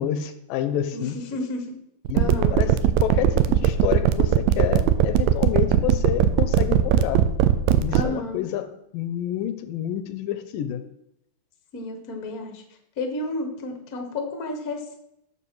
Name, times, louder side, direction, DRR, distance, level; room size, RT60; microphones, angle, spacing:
voice 1, 0.0-1.2 2.1-7.3 7.8-10.8, left 11 dB, 80° left, 10 dB, 2.2 m, -28 dB
voice 2, 0.9-1.6 2.1-2.5 7.9-8.5 11.7-12.6 13.0-15.0, left 2 dB, 65° left, 4 dB, 0.8 m, -31 dB
sound 1, 2.1-8.0, right 11 dB, 85° right, 2.4 m, -18 dB
12.5 x 6.6 x 4.6 m, 0.79 s
omnidirectional pair, 4.1 m